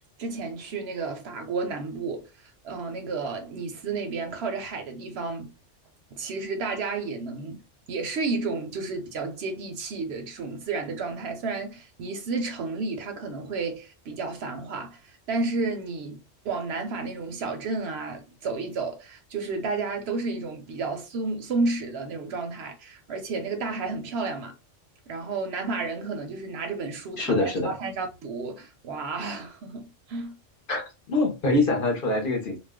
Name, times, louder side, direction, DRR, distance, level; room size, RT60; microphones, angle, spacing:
voice 1, 0.2-5.5 6.1-7.6 7.9-24.5 25.1-30.4, right 3 dB, 65° right, 0.7 m, -32 dB
voice 2, 27.2-27.7 30.7-32.6, left 2 dB, 50° left, 0.8 m, -24 dB
2.4 x 2.1 x 3.5 m
omnidirectional pair, 1.3 m